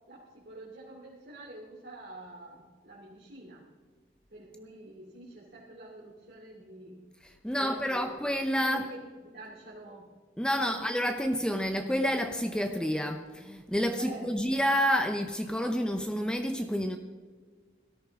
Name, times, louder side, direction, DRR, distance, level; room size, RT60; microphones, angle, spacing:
voice 1, 0.1-3.6 4.3-7.1 7.4-8.2 8.7-10.1 10.5-10.9 14.0-14.4, right 1 dB, 60° right, 2.7 m, -47 dB
voice 2, 7.4-8.9 10.4-17.0, equal, 5° left, 0.6 m, -29 dB
18.0 x 13.5 x 3.6 m
head